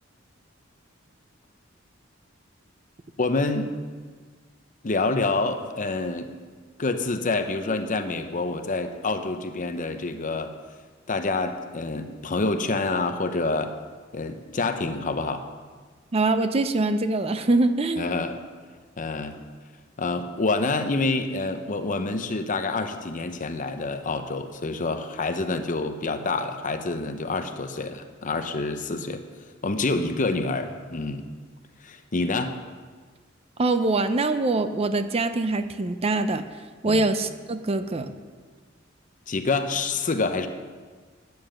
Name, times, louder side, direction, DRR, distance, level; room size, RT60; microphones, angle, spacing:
voice 1, 3.2-3.7 4.8-6.3 6.8-10.5 11.1-13.7 14.1-15.4 18.0-18.4 19.0-19.4 20.0-29.2 29.6-31.3 31.8-32.6 36.8-37.1 39.3-40.5, left 3 dB, 40° left, 8 dB, 0.8 m, -27 dB
voice 2, 16.1-18.1 33.6-36.4 36.8-38.1, right 2 dB, 30° right, 10 dB, 0.6 m, -23 dB
9.6 x 8.8 x 6.5 m, 1.5 s
head